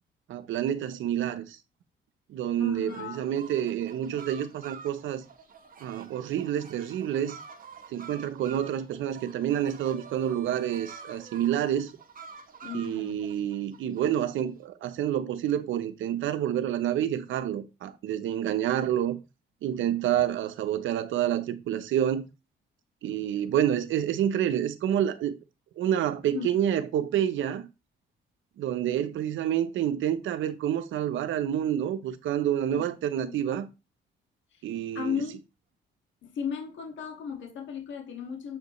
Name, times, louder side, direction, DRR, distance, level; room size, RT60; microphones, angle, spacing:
voice 1, 0.3-1.6 2.3-5.2 5.8-7.4 7.9-11.9 12.7-19.2 19.6-22.3 23.0-25.3 25.8-27.6 28.6-33.7 34.6-35.2, right 10 dB, 75° right, 0.8 m, -28 dB
voice 2, 2.6-3.3 12.6-13.2 26.3-26.5 32.7-32.9 33.2-33.5 34.5-34.7 34.9-35.3 36.2-38.6, left 7 dB, 70° left, 2.0 m, -35 dB
sound 1, 2.9-14.3, right 6 dB, 45° right, 1.1 m, -48 dB
7.3 x 5.2 x 3.1 m
cardioid pair, 90°, 20 cm